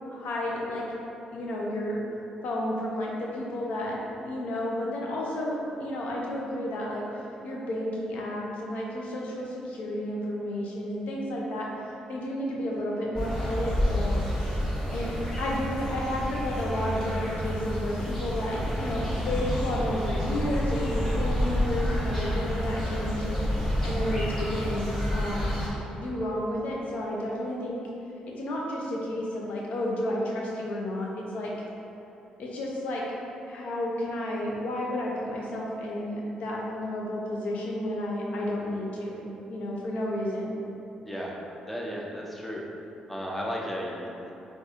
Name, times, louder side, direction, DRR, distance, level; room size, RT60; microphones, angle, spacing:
voice 1, 0.1-0.9 1.3-2.0 2.4-4.0 4.2-11.7 12.1-14.2 14.9-15.1 15.4-23.4 23.8-25.6 26.0-27.8 28.3-31.5 32.4-33.0 33.5-39.2 39.5-40.6, left 1 dB, 70° left, -3 dB, 0.6 m, -31 dB
sound 1, 13.1-25.7, equal, 20° left, 1.3 m, -29 dB
voice 2, 41.0-41.4 41.7-42.6 43.1-44.3, equal, 5° left, -3 dB, 0.5 m, -34 dB
4.0 x 2.4 x 2.5 m, 2.9 s
cardioid pair, 90°, 2 cm